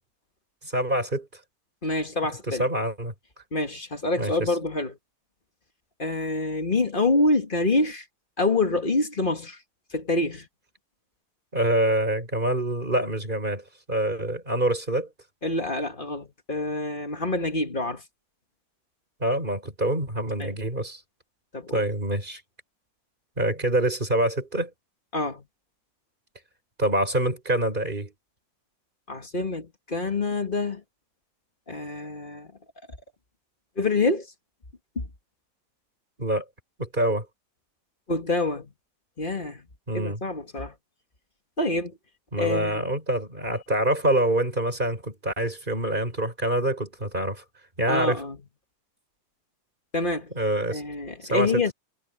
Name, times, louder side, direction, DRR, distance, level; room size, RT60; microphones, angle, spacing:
voice 1, 0.6-1.3 2.2-3.1 4.2-4.5 11.5-15.1 19.2-21.0 21.7-22.4 23.4-24.7 26.8-28.1 36.2-36.4 36.8-37.3 39.9-40.2 42.3-47.4 47.8-48.2 50.4-50.8 51.3-51.7, right 1 dB, 15° right, 5.2 m, -26 dB
voice 2, 1.8-2.6 3.5-5.0 6.0-8.0 8.4-9.6 9.9-10.5 15.4-18.0 20.4-20.6 21.5-21.8 25.1-25.4 29.1-30.8 31.7-32.5 33.7-34.3 34.9-35.1 38.1-38.7 39.2-39.6 39.9-40.7 41.6-42.0 42.4-42.9 47.9-48.4 49.9-50.3 50.7-51.7, left 2 dB, 20° left, 1.5 m, -26 dB
omnidirectional pair, 3.5 m